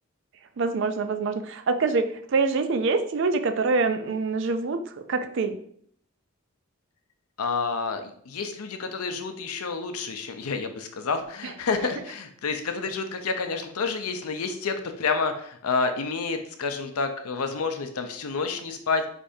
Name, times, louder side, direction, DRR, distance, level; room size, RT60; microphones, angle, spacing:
voice 1, 0.6-4.8 5.1-5.6 11.4-11.5, right 4 dB, 55° right, 9 dB, 0.4 m, -25 dB
voice 2, 7.4-19.0, left 4 dB, 80° left, 7 dB, 0.6 m, -29 dB
5.0 x 3.3 x 2.6 m, 0.63 s
head